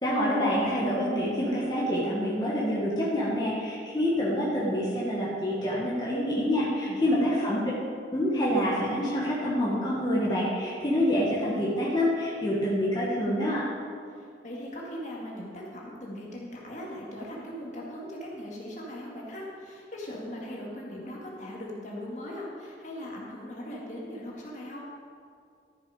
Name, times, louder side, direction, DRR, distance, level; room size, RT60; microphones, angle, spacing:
voice 1, 0.0-7.6 8.1-13.6, equal, 25° left, -7 dB, 1.8 m, -27 dB
voice 2, 6.8-7.5 14.1-24.9, equal, 45° left, -3 dB, 2.1 m, -39 dB
13.5 x 7.2 x 5.0 m, 2.3 s
head